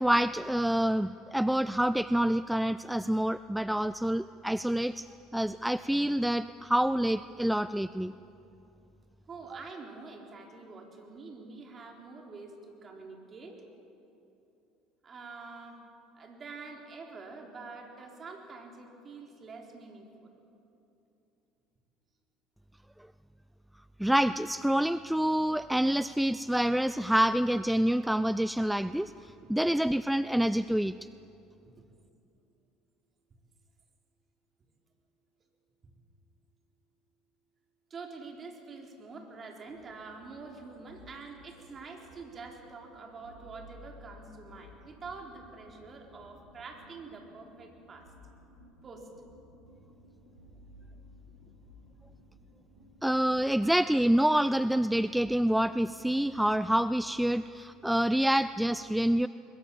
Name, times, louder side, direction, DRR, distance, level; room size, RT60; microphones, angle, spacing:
voice 1, 0.0-5.1 5.3-8.1 24.0-31.0 53.0-59.3, right 1 dB, 5° right, 15 dB, 0.4 m, -27 dB
voice 2, 9.3-13.6 15.0-15.8 16.1-20.3 35.8-35.9 37.9-48.1 48.8-49.1 51.4-51.5, right 4 dB, 35° right, 2 dB, 4.1 m, -46 dB
sound 1, 39.7-57.0, equal, 85° right, 5.1 m, -56 dB
22.0 x 21.5 x 7.3 m, 2.8 s
hypercardioid pair, 70°, 0 cm